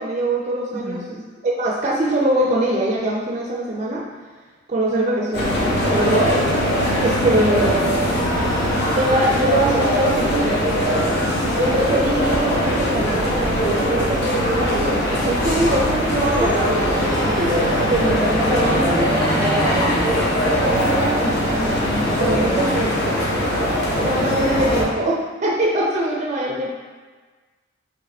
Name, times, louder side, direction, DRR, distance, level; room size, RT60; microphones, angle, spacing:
voice 1, 0.0-4.0 4.7-6.4 7.0-7.9 8.4-10.6 11.6-22.9 23.4-23.5 24.0-26.7, right 1 dB, 35° right, -2 dB, 0.4 m, -23 dB
voice 2, 0.7-1.1 7.2-7.5 8.0-8.5 18.2-19.9 22.3-22.9, equal, 5° left, -7 dB, 0.9 m, -27 dB
sound 1, 5.3-24.8, equal, 55° left, 1.0 m, -21 dB
4.6 x 3.0 x 3.4 m, 1.4 s
head